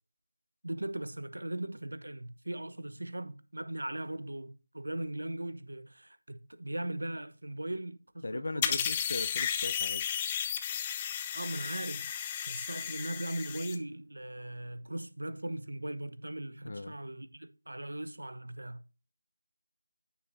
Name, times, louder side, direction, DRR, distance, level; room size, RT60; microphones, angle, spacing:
voice 1, 0.6-8.9 11.3-12.1 12.5-18.8, right 1 dB, 85° right, 0.9 m, -39 dB
voice 2, 8.2-10.0 16.6-16.9, left 2 dB, 55° left, 0.6 m, -38 dB
sound 1, 8.6-13.8, left 8 dB, 15° left, 0.4 m, -34 dB
9.2 x 6.3 x 2.7 m
figure-of-eight pair, 170°, 0 cm